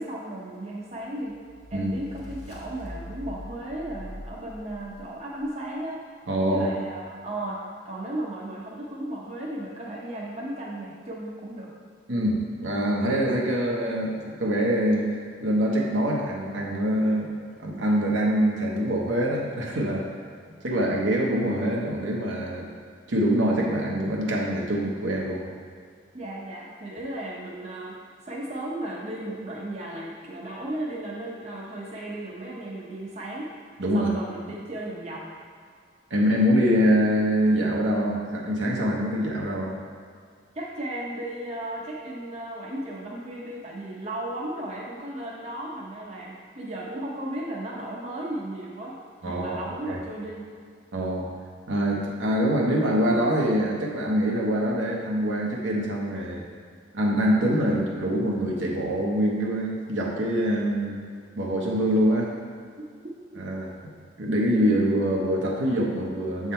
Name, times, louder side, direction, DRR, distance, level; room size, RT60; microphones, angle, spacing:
voice 1, 0.0-1.4 1.7-6.0 6.5-11.7 26.1-28.0 28.3-33.5 33.9-35.3 40.5-50.6, right 1 dB, 35° right, -4 dB, 0.8 m, -35 dB
sound 1, 1.2-5.5, left 1 dB, 35° left, 1.0 m, -43 dB
voice 2, 6.3-6.7 12.1-15.1 15.4-20.1 20.6-22.7 23.1-25.4 33.8-34.1 36.1-39.7 49.2-49.6 49.9-50.0 50.9-51.3 51.7-56.4 56.9-61.0 61.4-62.3 63.4-63.7 64.2-66.5, equal, 70° right, -2 dB, 1.0 m, -24 dB
7.1 x 3.7 x 4.3 m, 2.1 s
head